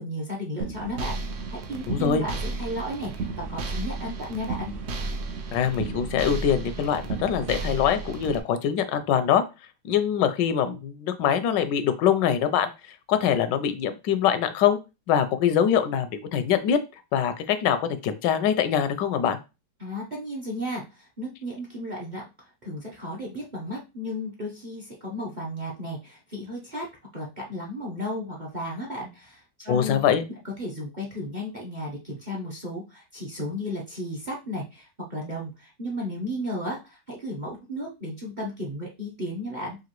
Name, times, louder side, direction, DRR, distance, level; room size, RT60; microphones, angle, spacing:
voice 1, 0.0-4.7 19.8-26.9 27.1-30.0 30.6-39.8, equal, 35° right, -2 dB, 0.7 m, -34 dB
sound 1, 0.6-8.4, right 3 dB, 80° right, 0.5 m, -33 dB
voice 2, 1.9-2.2 5.5-9.4 9.9-12.7 13.1-14.8 15.1-16.8 17.1-19.4 29.7-30.2, left 8 dB, 85° left, 11 dB, 1.2 m, -23 dB
4.9 x 2.6 x 3.0 m, 0.27 s
omnidirectional pair, 1.9 m